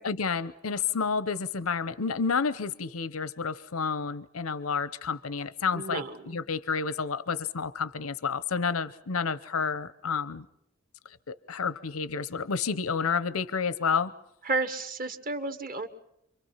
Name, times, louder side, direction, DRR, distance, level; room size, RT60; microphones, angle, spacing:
voice 1, 0.0-10.5 11.1-14.1, left 5 dB, 90° left, 15 dB, 0.8 m, -30 dB
voice 2, 5.7-6.4 14.4-15.9, right 3 dB, 45° right, 9 dB, 1.6 m, -32 dB
28.5 x 24.0 x 5.8 m, 0.78 s
head